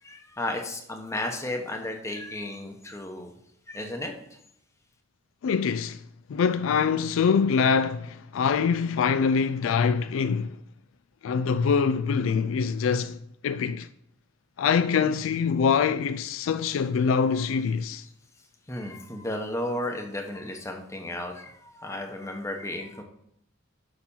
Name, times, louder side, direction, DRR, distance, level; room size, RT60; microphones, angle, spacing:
voice 1, 0.0-3.3 3.7-4.1 18.7-23.0, left 1 dB, 15° left, 0.9 m, -33 dB
voice 2, 5.4-6.0 6.3-10.6 11.2-13.2 13.4-13.9 14.6-18.0, left 6 dB, 85° left, 0.3 m, -24 dB
6.9 x 5.7 x 5.5 m
head